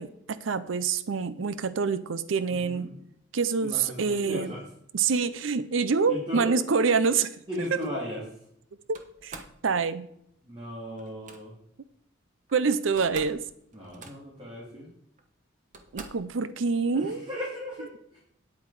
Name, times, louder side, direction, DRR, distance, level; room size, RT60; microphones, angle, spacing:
voice 1, 0.0-2.9 3.3-4.5 4.9-7.4 8.9-10.1 12.5-13.4 15.9-17.3, right 5 dB, 85° right, 14 dB, 0.6 m, -26 dB
voice 2, 2.5-2.9 3.6-4.6 6.0-6.6 7.5-8.2 10.4-11.6 13.7-14.9 16.9-18.2, equal, 25° right, -4 dB, 2.6 m, -36 dB
Slam, 8.9-9.6 11.0-11.4 12.5-12.6 12.8-13.4 13.7-14.4 15.2-15.3 15.7-16.3, right 3 dB, 40° right, 1.2 m, -45 dB
9.6 x 8.4 x 4.8 m, 0.72 s
head